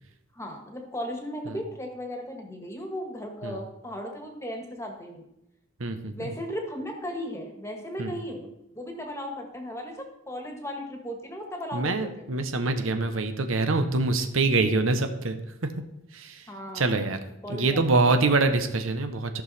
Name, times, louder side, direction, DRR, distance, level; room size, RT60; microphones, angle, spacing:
voice 1, 0.3-5.2 6.1-12.1 16.5-17.0 17.4-17.8, equal, 15° left, 2 dB, 1.5 m, -36 dB
voice 2, 5.8-6.3 8.0-8.1 11.7-15.4 16.1-16.5 16.7-17.2 17.5-19.4, right 3 dB, 85° right, 7 dB, 1.0 m, -25 dB
14.0 x 6.3 x 4.2 m, 0.85 s
head